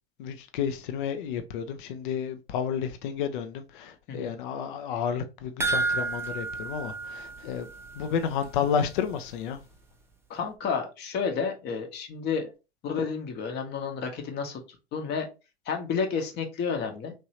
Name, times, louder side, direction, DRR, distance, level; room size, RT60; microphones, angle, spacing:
voice 1, 0.2-7.7 7.9-9.6, left 7 dB, 55° left, 0.4 m, -31 dB
sound 1, 5.6-8.1 8.4-8.5 9.0-9.1, right 3 dB, 10° right, 0.5 m, -31 dB
voice 2, 10.3-12.5 12.8-14.6 14.9-15.3 15.7-17.1, left 6 dB, 35° left, 0.8 m, -31 dB
3.1 x 2.6 x 2.8 m
figure-of-eight pair, 80°, 31 cm